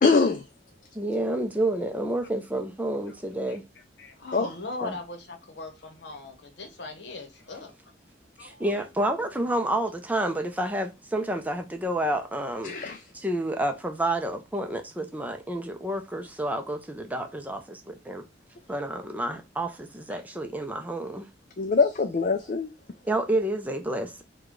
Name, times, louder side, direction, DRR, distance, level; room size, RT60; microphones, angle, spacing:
voice 1, 0.0-0.4 4.3-4.5 12.6-13.0 21.6-22.7, left 4 dB, 45° left, 0.4 m, -23 dB
voice 2, 0.9-3.6 4.8-5.0 8.4-12.8 13.1-18.2 18.7-21.3 23.1-24.2, right 1 dB, 10° right, 0.5 m, -29 dB
voice 3, 4.0-7.7 8.4-8.8, left 2 dB, 65° left, 0.9 m, -39 dB
4.8 x 2.3 x 3.7 m
head